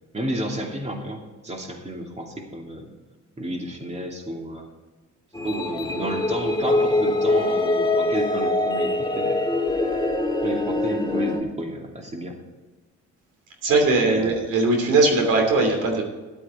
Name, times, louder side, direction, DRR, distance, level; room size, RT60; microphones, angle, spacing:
voice 1, 0.1-2.9 3.4-4.7 5.4-9.4 10.4-12.4 13.7-14.4, right 1 dB, 20° right, 1 dB, 2.6 m, -31 dB
sound 1, 5.3-11.4, left 2 dB, 15° left, 2.0 m, -23 dB
voice 2, 13.6-16.0, right 3 dB, 85° right, 3 dB, 3.0 m, -20 dB
13.0 x 11.5 x 4.3 m, 1.2 s
cardioid pair, 90°, 30 cm